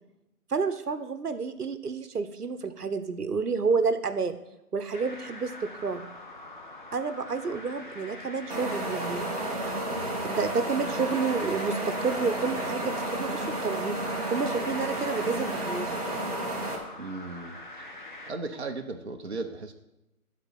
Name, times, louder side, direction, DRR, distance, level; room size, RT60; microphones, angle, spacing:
voice 1, 0.5-4.4 4.7-6.0 6.9-9.2 10.2-14.0 14.3-15.9, right 5 dB, 80° right, 10 dB, 1.1 m, -30 dB
sound 1, 4.9-18.3, left 2 dB, 30° left, 1.0 m, -44 dB
sound 2, 8.5-16.8, right 1 dB, 25° right, 1.5 m, -32 dB
voice 2, 9.9-10.3 17.0-17.6 18.3-19.7, right 3 dB, 45° right, 3 dB, 0.9 m, -36 dB
12.5 x 4.2 x 7.6 m, 0.94 s
figure-of-eight pair, 170°, 46 cm